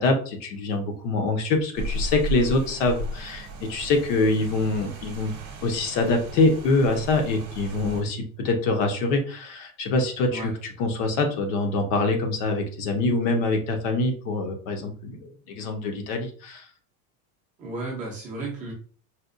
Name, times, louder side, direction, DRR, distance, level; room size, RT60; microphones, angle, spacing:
voice 1, 0.0-5.3 5.6-10.5 10.8-16.7, left 2 dB, 55° left, 5 dB, 0.8 m, -25 dB
Rain, 1.8-8.0, right 1 dB, 40° right, 1.0 m, -35 dB
voice 2, 17.6-18.7, right 2 dB, 20° right, -3 dB, 0.6 m, -33 dB
4.2 x 2.2 x 2.5 m, 0.43 s
cardioid pair, 180°, 44 cm